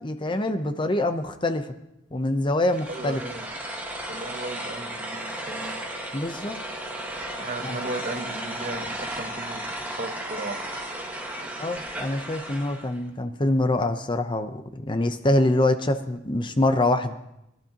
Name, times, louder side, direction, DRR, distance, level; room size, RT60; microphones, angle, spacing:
voice 1, 0.0-1.7 2.1-3.2 6.1-6.6 7.6-7.7 11.6-17.1, left 1 dB, 25° left, 8 dB, 0.7 m, -25 dB
sound 1, 2.6-13.0, right 1 dB, 10° right, 1.6 m, -34 dB
voice 2, 2.9-3.5 4.1-5.8 7.4-10.6 11.4-11.5, right 2 dB, 40° right, 7 dB, 1.0 m, -36 dB
22.0 x 12.0 x 2.9 m, 0.86 s
head